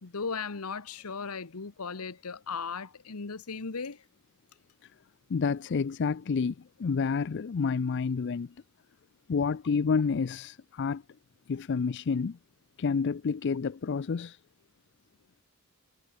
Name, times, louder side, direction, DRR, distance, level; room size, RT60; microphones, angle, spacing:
voice 1, 0.0-4.0, left 5 dB, 85° left, 1.1 m, -37 dB
voice 2, 5.3-6.5 6.8-8.5 9.3-11.0 11.5-12.4 12.8-14.4, left 5 dB, 55° left, 0.4 m, -29 dB
head